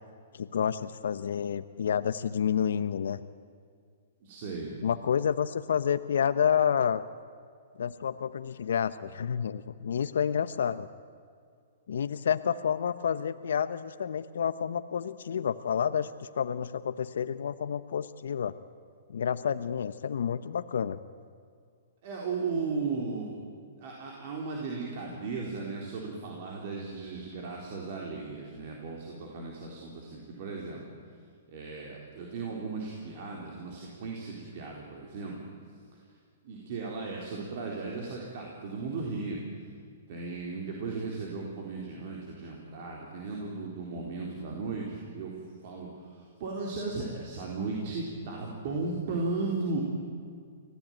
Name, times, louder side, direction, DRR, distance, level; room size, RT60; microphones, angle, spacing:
voice 1, 0.3-3.2 4.8-7.0 7.8-10.9 11.9-18.5 19.1-21.0, left 8 dB, 75° left, 12 dB, 0.7 m, -29 dB
voice 2, 4.2-4.7 22.0-23.4 23.8-30.8 31.5-35.4 36.4-39.4 40.1-45.4 45.6-49.8, right 3 dB, 50° right, -1 dB, 4.1 m, -36 dB
25.0 x 16.5 x 9.1 m, 2.2 s
hypercardioid pair, 130°, 0 cm